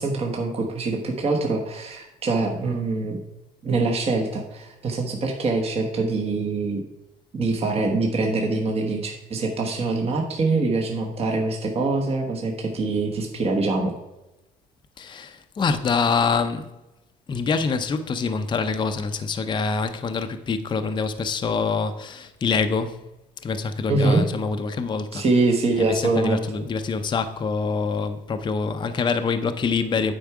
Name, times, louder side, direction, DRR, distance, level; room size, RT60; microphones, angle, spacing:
voice 1, 0.0-3.2 3.6-6.8 7.3-13.9 23.9-24.2 25.1-26.4, right 3 dB, 35° right, 1.2 m, -24 dB
voice 2, 15.0-16.7 17.3-23.0 23.4-25.2 25.8-30.1, left 5 dB, 25° left, 0.6 m, -25 dB
9.0 x 4.7 x 4.8 m
cardioid pair, 110°, 17 cm